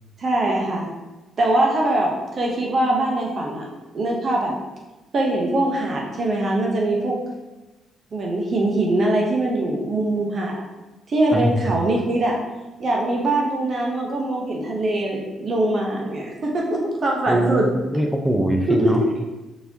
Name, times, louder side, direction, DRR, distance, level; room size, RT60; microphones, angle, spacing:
voice 1, 0.2-0.9 1.4-3.6 3.9-4.5 5.1-7.2 8.1-10.6 11.1-12.4 12.8-17.7 18.7-19.1, right 1 dB, 50° right, -1 dB, 0.8 m, -22 dB
voice 2, 17.3-19.0, right 1 dB, 5° right, 3 dB, 0.6 m, -22 dB
4.5 x 4.2 x 2.7 m, 1.1 s
cardioid pair, 90°, 0 cm